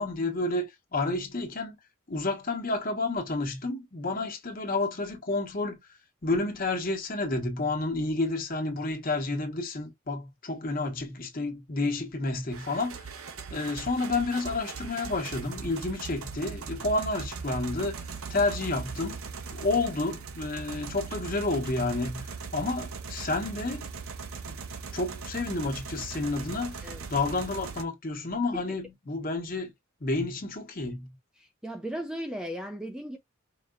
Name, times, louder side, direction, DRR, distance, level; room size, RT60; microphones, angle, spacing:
voice 1, 0.0-1.8 2.1-5.8 6.2-13.1 13.5-19.2 19.5-23.9 24.4-24.6 24.9-29.7 30.0-31.1, left 2 dB, 40° left, 1.3 m, -30 dB
sound 1, 12.5-27.8, right 5 dB, 90° right, 0.8 m, -39 dB
voice 2, 31.4-33.2, equal, 5° right, 0.4 m, -36 dB
5.1 x 2.8 x 2.5 m
head